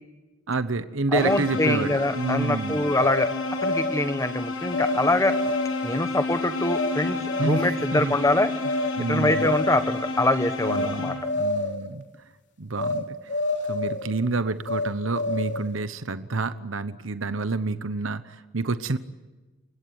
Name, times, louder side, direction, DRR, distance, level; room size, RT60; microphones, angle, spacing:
voice 1, 0.5-2.9 7.4-7.6 7.9-8.1 9.0-9.5 10.7-12.0 12.6-13.4 13.7-19.0, right 3 dB, 70° right, 12 dB, 1.0 m, -28 dB
sound 1, 1.1-11.5, left 2 dB, 85° left, 7.0 m, -31 dB
voice 2, 1.1-3.3 3.6-5.4 5.8-8.5 9.1-11.2, left 1 dB, 15° left, 10 dB, 1.3 m, -24 dB
sound 2, 3.0-4.1 4.7-5.0 5.3-5.9 6.7-6.9 7.3-7.8 8.6-8.9 9.2-9.9 10.6-10.9 11.2-11.8 12.8-13.0 13.3-14.1 14.7-15.7, left 2 dB, 55° left, 3.5 m, -28 dB
29.5 x 17.0 x 9.6 m, 1.2 s
head